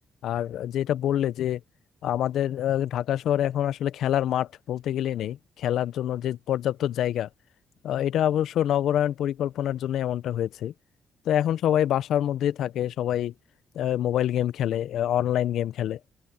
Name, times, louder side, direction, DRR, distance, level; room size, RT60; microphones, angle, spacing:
voice 1, 0.2-1.6 2.0-7.3 7.8-10.7 11.3-13.3 13.7-16.0, left 11 dB, 75° left, 0.7 m, -26 dB
open air
cardioid pair, 90°, 0 cm